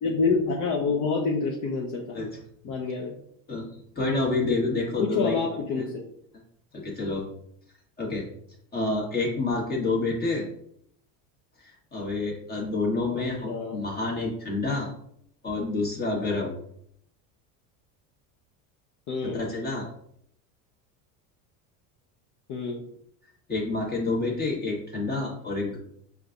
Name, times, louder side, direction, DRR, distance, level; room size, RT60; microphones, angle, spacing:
voice 1, 0.0-2.2 2.6-3.1 5.0-5.9 13.1-13.8 19.1-19.4 22.5-22.8, left 4 dB, 40° left, -1 dB, 0.7 m, -27 dB
voice 2, 3.9-5.4 6.7-7.3 8.0-8.3 8.7-10.5 11.6-14.9 15.4-16.5 19.2-19.9 23.5-25.8, left 3 dB, 20° left, -1 dB, 1.3 m, -28 dB
5.1 x 2.4 x 2.5 m, 0.68 s
supercardioid pair, 110°, 44 cm